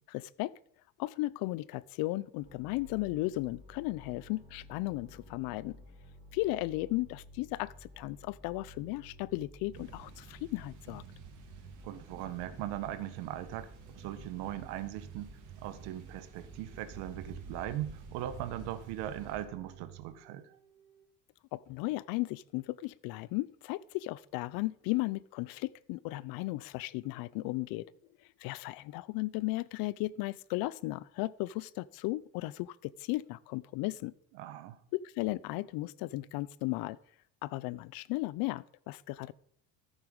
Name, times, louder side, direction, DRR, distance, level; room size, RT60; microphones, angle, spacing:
voice 1, 0.1-0.5 1.0-5.8 6.3-11.0 21.5-27.9 28.4-34.1 34.9-37.0 37.4-39.3, left 19 dB, 70° left, 21 dB, 0.6 m, -35 dB
sound 1, 2.4-21.0, right 2 dB, 15° right, 4.9 m, -54 dB
sound 2, 9.7-19.4, right 5 dB, 50° right, 3.2 m, -51 dB
voice 2, 11.8-15.3 15.6-20.6 34.3-34.8, right 12 dB, 80° right, 11 dB, 1.4 m, -39 dB
14.0 x 8.3 x 5.4 m, 0.65 s
cardioid pair, 125°, 38 cm